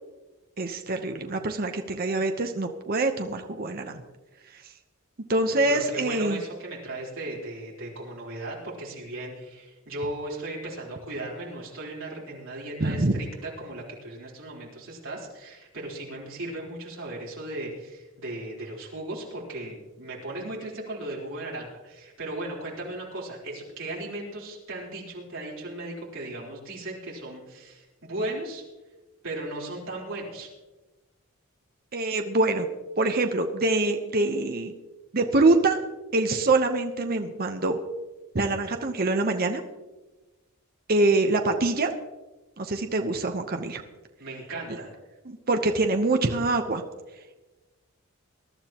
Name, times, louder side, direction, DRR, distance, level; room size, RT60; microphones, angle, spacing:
voice 1, 0.6-4.0 4.5-4.6 5.3-6.4 12.8-13.1 31.9-32.7 33.0-34.7 35.1-35.8 36.1-37.8 38.3-39.6 40.9-41.9 42.6-43.8 45.3-46.8, right 2 dB, 45° right, 5 dB, 0.9 m, -24 dB
voice 2, 5.7-28.6 29.2-30.5 44.2-44.9, right 1 dB, 65° right, -4 dB, 3.8 m, -36 dB
21.5 x 12.0 x 3.0 m, 1.2 s
head